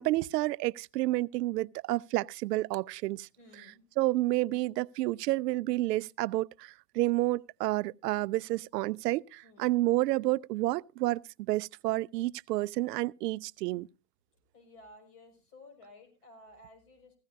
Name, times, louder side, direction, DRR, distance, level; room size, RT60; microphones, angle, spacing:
voice 1, 0.0-3.3 4.0-13.9, right 18 dB, 70° right, 0.5 m, -30 dB
voice 2, 3.4-3.8 4.5-4.6 9.4-9.8 14.5-17.2, left 2 dB, 60° left, 5.7 m, -55 dB
16.0 x 15.0 x 2.6 m
hypercardioid pair, 125°, 50 cm